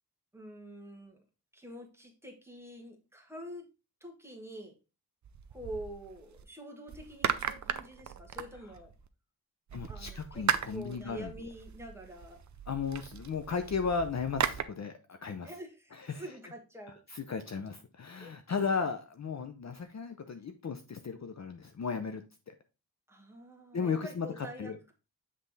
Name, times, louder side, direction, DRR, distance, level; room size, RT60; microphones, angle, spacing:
voice 1, 0.3-1.2 1.5-3.7 4.0-4.7 5.5-8.9 9.9-10.5 10.7-12.4 15.4-17.0 18.2-18.4 23.1-24.9, right 1 dB, 5° right, 1.4 m, -46 dB
sound 1, 5.2-6.4 6.9-9.1 9.7-14.6, right 7 dB, 50° right, 0.5 m, -37 dB
voice 2, 9.7-11.3 12.7-15.5 15.9-16.2 17.1-22.5 23.7-24.8, left 5 dB, 45° left, 0.6 m, -35 dB
7.5 x 3.4 x 3.9 m
wide cardioid pair, 130°, 38 cm